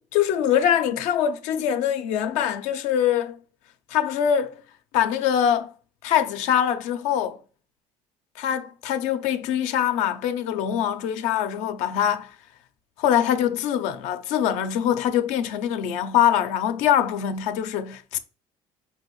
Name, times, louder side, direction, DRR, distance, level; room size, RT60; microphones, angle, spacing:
voice 1, 0.0-3.3 3.9-4.6 4.9-5.7 6.0-7.4 8.4-12.3 13.0-18.2, left 9 dB, 80° left, 0.6 m, -23 dB
5.6 x 2.7 x 3.1 m
cardioid pair, 125°, 12 cm